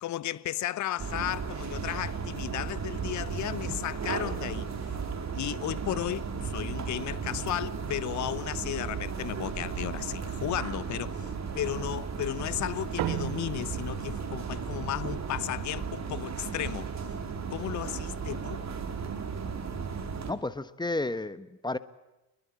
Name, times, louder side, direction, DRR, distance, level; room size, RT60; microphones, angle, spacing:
voice 1, 0.0-5.0 5.3-16.9 17.5-18.6, left 13 dB, 35° left, 1.0 m, -34 dB
sound 1, 1.0-20.3, right 5 dB, 30° right, 4.1 m, -35 dB
sound 2, 13.0-17.7, right 14 dB, 50° right, 1.4 m, -39 dB
voice 2, 20.3-21.8, left 2 dB, 10° left, 1.3 m, -32 dB
26.5 x 22.0 x 8.6 m
figure-of-eight pair, 60°, 50 cm